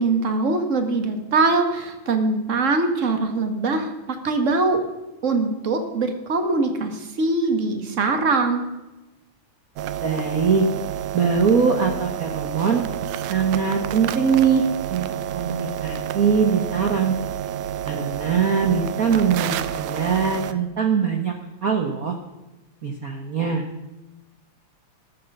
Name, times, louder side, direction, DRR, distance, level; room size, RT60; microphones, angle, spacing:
voice 1, 0.0-4.8 5.2-8.7, right 3 dB, 40° right, 7 dB, 1.2 m, -22 dB
sound 1, 9.8-20.5, right 10 dB, 85° right, 2.2 m, -29 dB
voice 2, 10.0-10.7 11.1-12.8 13.3-14.6 14.9-15.1 15.3-17.1 17.8-21.3 21.6-22.2 22.8-23.6, right 6 dB, 60° right, 4 dB, 0.9 m, -22 dB
13.5 x 12.5 x 5.5 m, 1.1 s
omnidirectional pair, 3.5 m